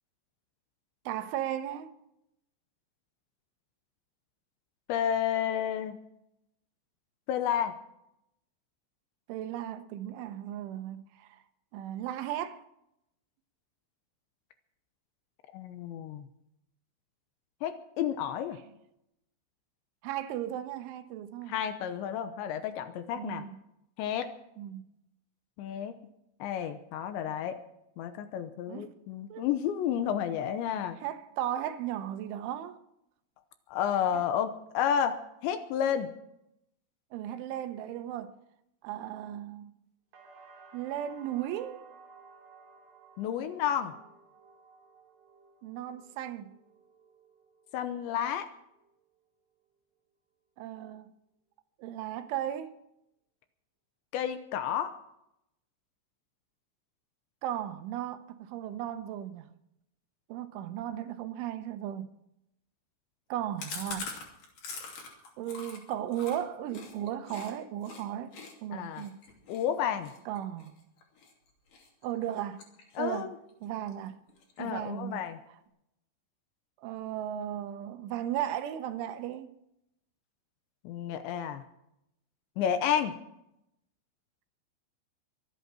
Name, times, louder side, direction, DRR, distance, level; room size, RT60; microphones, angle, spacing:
voice 1, 1.1-1.9 9.3-11.4 11.7-12.6 20.0-21.6 23.2-23.6 24.6-24.8 28.7-28.9 29.3-29.4 31.0-32.8 34.1-34.2 37.1-38.4 38.8-39.8 40.7-41.9 45.6-46.5 50.6-51.2 51.8-52.7 57.4-59.5 60.3-62.1 63.3-64.1 65.4-69.2 70.3-70.7 72.0-72.6 73.0-73.3 73.6-74.2 74.6-75.6 76.8-79.5, right 11 dB, 80° right, 3.2 m, -36 dB
voice 2, 4.9-6.0 7.3-7.7 15.5-16.3 17.6-18.6 21.5-23.4 24.0-24.3 25.6-25.9 26.4-27.6 28.0-31.0 33.7-36.1 43.2-43.9 47.7-48.5 54.1-54.9 68.7-69.1 69.5-70.1 73.0-73.3 74.6-75.4 80.8-81.6 82.6-83.1, left 9 dB, 80° left, 2.9 m, -31 dB
sound 1, 40.1-48.0 48.4-49.1, right 4 dB, 60° right, 5.4 m, -56 dB
Chewing mastication, 63.6-67.5 67.8-68.0 68.3-71.3 71.7-72.0 72.3-73.2 73.5-73.6 73.9-74.0 74.3-74.9, left 4 dB, 50° left, 3.9 m, -43 dB
24.0 x 8.4 x 6.1 m
omnidirectional pair, 5.7 m